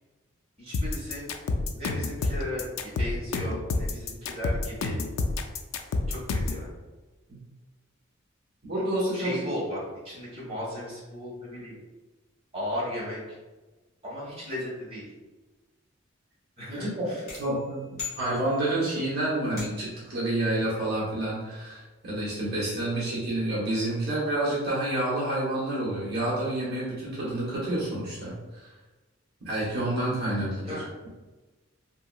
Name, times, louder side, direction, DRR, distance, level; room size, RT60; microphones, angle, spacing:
voice 1, 0.6-1.2 1.7-5.0 6.1-6.8 9.1-9.8 10.0-11.8 12.5-13.4 14.0-15.1 16.6-17.2 30.6-30.9, left 1 dB, 30° right, -8 dB, 1.2 m, -36 dB
sound 1, 0.7-6.6, left 3 dB, 80° left, 0.3 m, -28 dB
voice 2, 8.6-9.5 16.7-28.7 29.4-30.8, right 1 dB, 50° right, -8 dB, 0.9 m, -29 dB
sound 2, 17.3-18.9 19.6-20.1, left 5 dB, 45° left, 1.2 m, -40 dB
2.8 x 2.8 x 2.3 m, 1.2 s
head